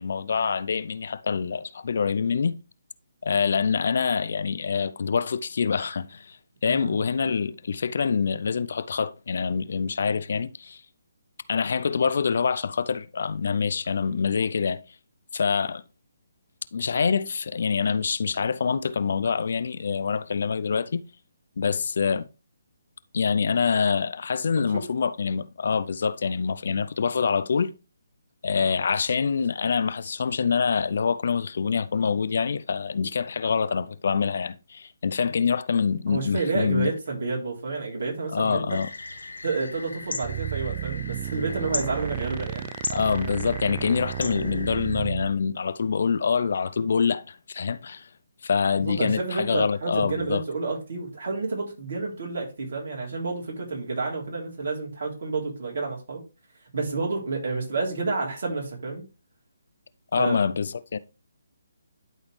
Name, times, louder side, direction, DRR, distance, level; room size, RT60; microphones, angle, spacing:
voice 1, 0.0-2.6 3.2-6.4 6.6-10.8 11.5-14.8 15.3-15.8 16.7-21.0 21.6-22.3 23.1-27.7 28.4-36.9 38.3-38.9 42.9-48.1 48.4-50.4 60.1-61.0, left 6 dB, 60° left, 0.5 m, -25 dB
voice 2, 36.1-38.8 39.4-42.6 48.8-56.2 56.7-59.0 60.2-60.4, right 3 dB, 60° right, 3.5 m, -30 dB
sound 1, 38.7-45.0, left 3 dB, 85° left, 1.6 m, -37 dB
sound 2, 40.2-45.3, right 14 dB, 30° right, 0.3 m, -33 dB
11.5 x 4.1 x 3.3 m
figure-of-eight pair, 150°, 0 cm